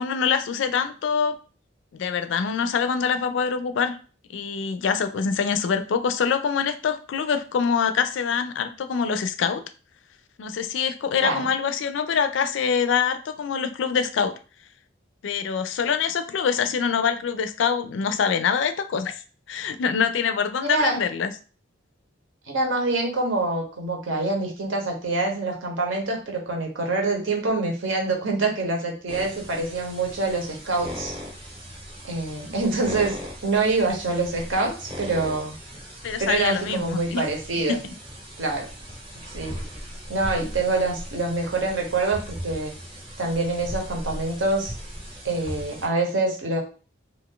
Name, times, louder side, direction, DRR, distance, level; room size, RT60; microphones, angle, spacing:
voice 1, 0.0-1.4 1.9-4.0 4.3-9.6 10.4-14.3 15.2-19.2 19.5-21.3 36.0-37.2 37.8-37.9, left 6 dB, 70° left, 11 dB, 0.3 m, -25 dB
voice 2, 20.6-21.0 22.5-31.1 32.0-33.2 33.4-35.5 36.2-37.8 38.4-38.7 39.3-39.5 40.1-42.7 43.2-44.7 45.2-46.6, right 3 dB, 80° right, 1 dB, 0.9 m, -25 dB
sound 1, 29.1-45.9, equal, 30° right, 0.7 m, -38 dB
2.6 x 2.4 x 3.6 m, 0.37 s
head